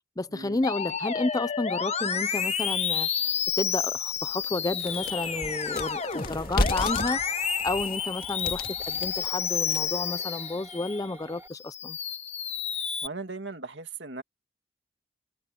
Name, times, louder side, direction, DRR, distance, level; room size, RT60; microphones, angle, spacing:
voice 1, 0.2-3.1 3.6-7.2 7.6-12.0, left 2 dB, 20° left, 0.6 m, -31 dB
Musical instrument, 0.6-11.0 11.5-13.1, left 7 dB, 40° left, 1.3 m, -30 dB
sound 1, 2.9-3.0 3.5-3.6 4.0-10.0, left 2 dB, 55° left, 2.1 m, -33 dB
sound 2, 4.8-11.5, right 2 dB, 15° right, 4.4 m, -47 dB
voice 2, 13.0-14.2, right 3 dB, 70° right, 2.6 m, -38 dB
head